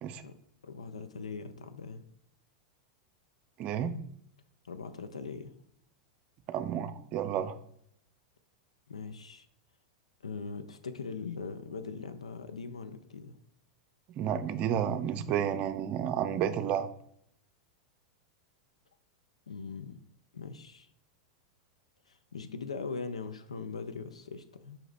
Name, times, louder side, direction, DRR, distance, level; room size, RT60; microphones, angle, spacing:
voice 1, 0.6-2.0 4.6-5.5 8.9-9.5 10.2-13.3 19.5-20.0 20.3-20.9 22.1-24.8, left 4 dB, 90° left, 9 dB, 0.4 m, -41 dB
voice 2, 3.6-4.0 6.5-7.6 14.2-16.9, right 9 dB, 40° right, 11 dB, 0.4 m, -31 dB
5.7 x 2.6 x 3.2 m, 0.69 s
hypercardioid pair, 95°, 3 cm